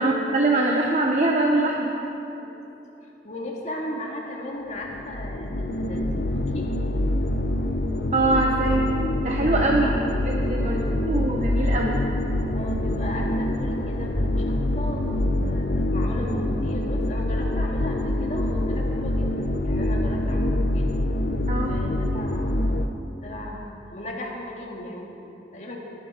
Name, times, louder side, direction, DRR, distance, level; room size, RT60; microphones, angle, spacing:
voice 1, 0.0-1.9 8.1-8.8 9.2-10.0 10.2-10.7 11.1-12.0 21.5-21.7, right 2 dB, 40° right, 0 dB, 1.0 m, -22 dB
voice 2, 2.3-6.7 9.5-9.9 10.6-11.0 12.5-20.9 21.6-22.6 23.1-25.8, left 1 dB, 40° left, -2 dB, 2.1 m, -36 dB
sound 1, 4.8-22.9, left 1 dB, 60° left, 0.8 m, -25 dB
20.0 x 12.0 x 5.1 m, 2.9 s
head